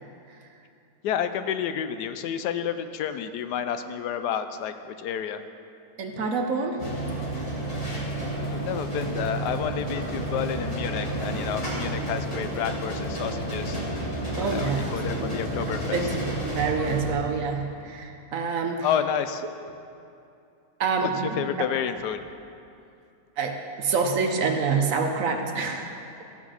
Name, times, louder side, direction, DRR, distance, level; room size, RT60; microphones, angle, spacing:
voice 1, 1.0-5.4 8.4-13.8 14.4-16.0 18.8-19.4 21.0-21.1 21.4-22.2, left 9 dB, 80° left, 10 dB, 1.1 m, -30 dB
voice 2, 6.0-6.8 14.4-18.9 20.8-21.7 23.4-25.9, right 5 dB, 60° right, 4 dB, 1.1 m, -27 dB
sound 1, 6.8-17.1, right 1 dB, 25° left, 1.7 m, -31 dB
14.0 x 6.0 x 6.3 m, 2.5 s
omnidirectional pair, 1.8 m